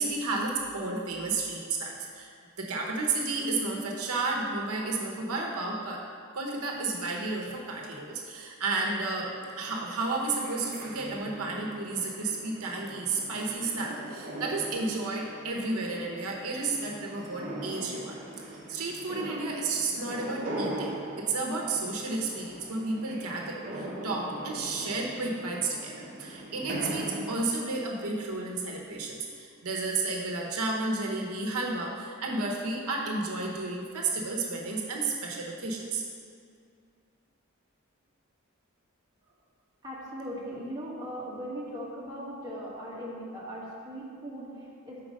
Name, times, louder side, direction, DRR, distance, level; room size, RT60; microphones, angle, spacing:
voice 1, 0.0-2.3 2.6-6.0 6.3-36.0, right 3 dB, 90° right, -1 dB, 0.9 m, -32 dB
sound 1, 9.2-27.4, right 1 dB, 40° right, 1.0 m, -40 dB
voice 2, 39.8-45.0, equal, 20° right, -7 dB, 1.4 m, -39 dB
5.2 x 4.6 x 6.2 m, 2.3 s
head